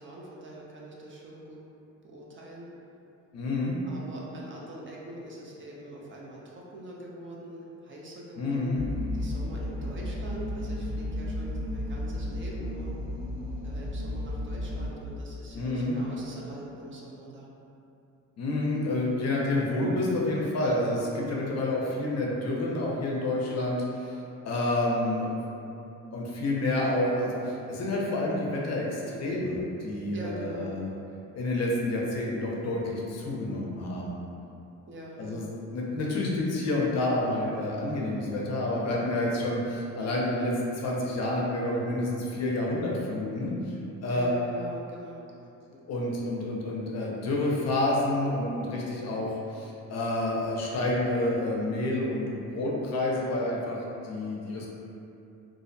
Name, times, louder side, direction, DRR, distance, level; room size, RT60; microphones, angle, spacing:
voice 1, 0.0-1.6 2.0-2.7 3.9-8.7 9.1-12.9 13.6-17.5 30.1-30.7 34.9-35.5 44.1-45.2, right 1 dB, 40° right, -4 dB, 0.4 m, -43 dB
voice 2, 3.3-3.8 8.4-8.8 15.5-16.0 18.4-24.2 24.4-25.3 26.1-30.9 31.3-34.2 35.2-43.7 44.0-44.3 45.7-53.8 54.0-54.7, left 1 dB, 55° left, -3 dB, 0.5 m, -29 dB
sound 1, 8.8-14.9, left 1 dB, 60° right, 1.0 m, -33 dB
2.4 x 2.0 x 2.6 m, 2.7 s
cardioid pair, 110°, 32 cm